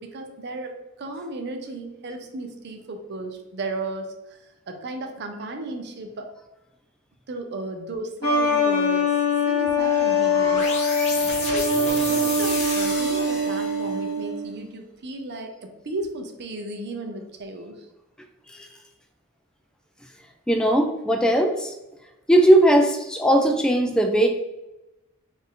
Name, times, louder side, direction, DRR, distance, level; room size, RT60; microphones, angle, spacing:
voice 1, 0.0-6.3 7.3-9.2 9.5-10.7 11.4-17.9, right 2 dB, 50° right, 5 dB, 0.5 m, -35 dB
sound 1, 8.2-14.5, left 2 dB, 75° left, 0.9 m, -23 dB
sound 2, 9.8-14.1, left 2 dB, 30° left, 1.0 m, -32 dB
voice 2, 20.5-21.7 22.3-24.3, right 1 dB, 5° left, 3 dB, 0.3 m, -18 dB
4.2 x 2.6 x 3.6 m, 0.95 s
head